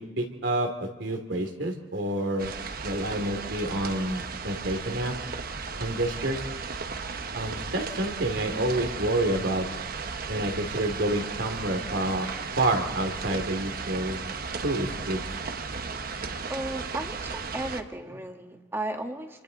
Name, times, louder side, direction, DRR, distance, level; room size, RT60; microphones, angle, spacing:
voice 1, 0.0-2.5 2.8-5.1 5.8-6.4 7.3-9.7 10.3-12.3 12.6-14.2 14.6-15.2, right 1 dB, 80° right, 4 dB, 2.8 m, -28 dB
sound 1, 2.4-17.8, right 4 dB, 55° right, 1.0 m, -35 dB
voice 2, 16.5-19.4, right 1 dB, 15° right, 4 dB, 1.6 m, -35 dB
28.0 x 24.5 x 4.0 m, 1.0 s
head